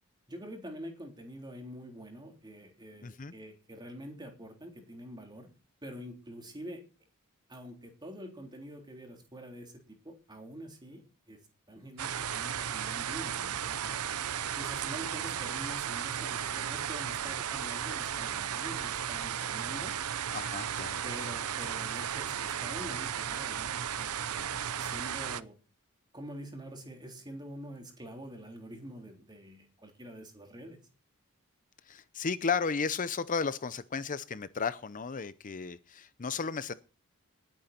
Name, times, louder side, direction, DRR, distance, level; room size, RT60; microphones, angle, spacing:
voice 1, 0.3-5.5 5.8-6.8 7.5-11.4 11.7-14.0 14.6-19.9 21.0-25.6 26.1-30.8, equal, 20° right, 3 dB, 3.7 m, -46 dB
voice 2, 3.0-3.3 20.3-21.0 31.9-36.7, left 5 dB, 35° left, 14 dB, 0.6 m, -34 dB
sound 1, 12.0-25.4, right 9 dB, 90° right, 0.7 m, -35 dB
19.5 x 9.1 x 4.4 m, 0.34 s
head